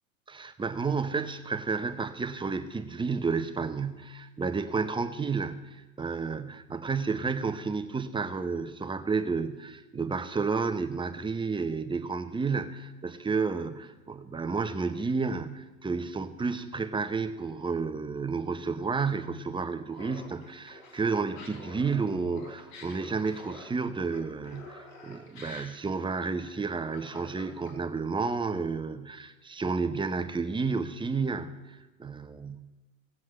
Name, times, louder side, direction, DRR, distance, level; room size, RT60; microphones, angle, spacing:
voice 1, 0.3-32.6, right 4 dB, 10° right, 8 dB, 0.9 m, -31 dB
Laughter, 19.9-28.0, left 2 dB, 60° left, 4.4 m, -48 dB
17.0 x 7.7 x 7.7 m, 1.2 s
hypercardioid pair, 90°, 42 cm